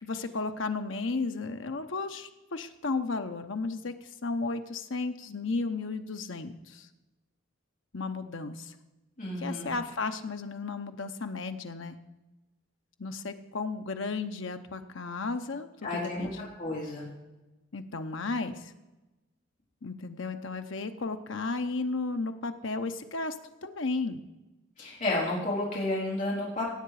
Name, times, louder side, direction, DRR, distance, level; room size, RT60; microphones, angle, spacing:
voice 1, 0.0-6.9 7.9-8.7 9.4-12.0 13.0-16.5 17.7-18.7 19.8-23.4 23.6-24.2, left 3 dB, 65° left, 7 dB, 0.9 m, -34 dB
voice 2, 9.2-9.7 15.8-17.0 24.8-26.6, left 2 dB, 40° left, -6 dB, 4.1 m, -31 dB
17.0 x 7.8 x 4.9 m, 1.1 s
head